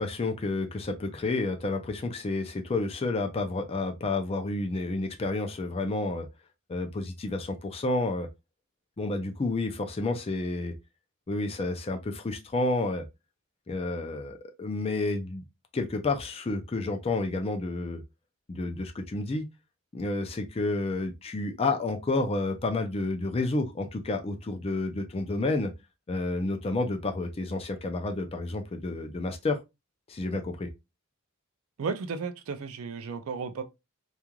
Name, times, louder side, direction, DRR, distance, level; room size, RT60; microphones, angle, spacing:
voice 1, 0.0-6.3 6.7-8.3 9.0-10.7 11.3-13.0 13.7-15.4 15.7-18.0 18.5-19.5 19.9-25.7 26.1-29.6 30.1-30.7, left 2 dB, 25° left, 0.4 m, -30 dB
voice 2, 31.8-33.6, right 5 dB, 65° right, 0.4 m, -34 dB
3.0 x 2.4 x 2.2 m
head